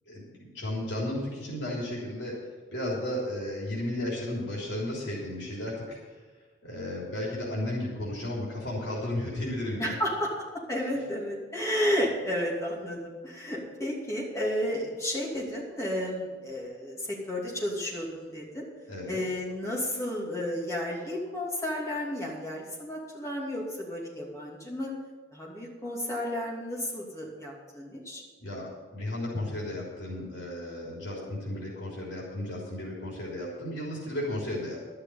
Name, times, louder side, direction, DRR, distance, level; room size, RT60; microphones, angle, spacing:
voice 1, 0.1-2.4 2.7-6.0 6.6-10.0 18.9-19.2 28.4-34.8, left 1 dB, 70° left, -4 dB, 3.4 m, -34 dB
voice 2, 9.8-10.3 10.7-18.7 19.1-24.9 25.3-28.2, left 1 dB, 15° left, -4 dB, 2.7 m, -32 dB
12.0 x 6.7 x 8.6 m, 1.4 s
head